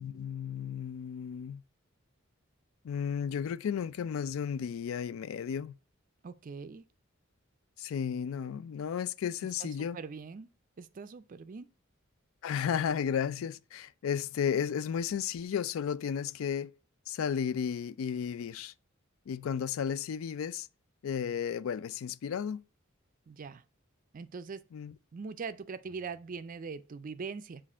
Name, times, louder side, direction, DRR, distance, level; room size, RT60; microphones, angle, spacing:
voice 1, 0.0-1.6 2.8-5.7 7.8-10.0 12.4-16.7 17.1-18.7 19.3-20.7 21.0-22.6 24.7-24.9, left 7 dB, 80° left, 0.3 m, -33 dB
voice 2, 6.2-6.8 9.6-10.5 10.8-11.7 23.3-23.6 24.1-24.6 25.1-27.6, right 5 dB, 40° right, 0.4 m, -42 dB
7.3 x 2.5 x 5.4 m
head